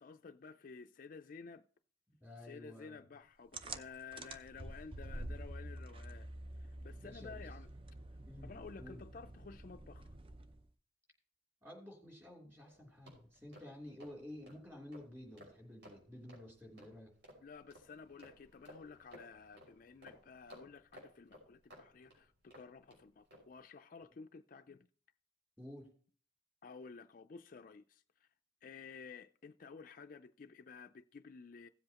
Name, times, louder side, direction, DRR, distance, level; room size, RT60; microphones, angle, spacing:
voice 1, 0.0-1.6 2.4-6.3 6.6-7.7 8.4-10.1 17.4-24.9 26.6-28.3 28.6-31.7, left 5 dB, 45° left, 0.4 m, -53 dB
voice 2, 2.2-3.1 7.0-7.4 8.2-8.5 8.8-9.0 11.6-17.1 25.6-25.9, left 1 dB, 10° right, 3.1 m, -52 dB
sound 1, 3.5-10.7, right 1 dB, 30° right, 0.5 m, -48 dB
sound 2, 12.6-23.0 23.3-23.5, equal, 65° right, 5.5 m, -59 dB
16.5 x 7.7 x 2.9 m
head